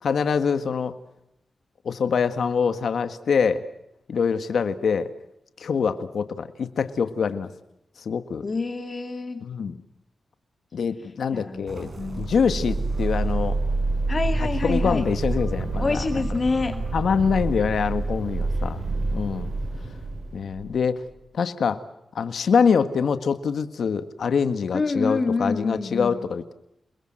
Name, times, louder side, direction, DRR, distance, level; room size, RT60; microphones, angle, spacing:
voice 1, 0.0-1.0 1.8-3.6 4.1-5.1 5.6-7.5 8.0-8.4 9.4-9.8 10.7-11.9 12.2-13.6 14.4-16.0 16.9-18.8 19.1-19.5 20.3-21.0 21.3-21.8 22.1-26.5, left 6 dB, 80° left, 10 dB, 1.7 m, -24 dB
voice 2, 8.4-9.4 11.3-12.3 14.1-15.1 15.8-16.8 18.6-19.1 24.7-26.2, left 3 dB, 45° left, 7 dB, 2.4 m, -27 dB
sound 1, 11.7-17.5, right 3 dB, 45° right, 5.8 m, -43 dB
sound 2, 11.7-21.0, right 2 dB, 60° right, 7.3 m, -28 dB
29.0 x 21.5 x 7.8 m, 0.83 s
cardioid pair, 60°, 0 cm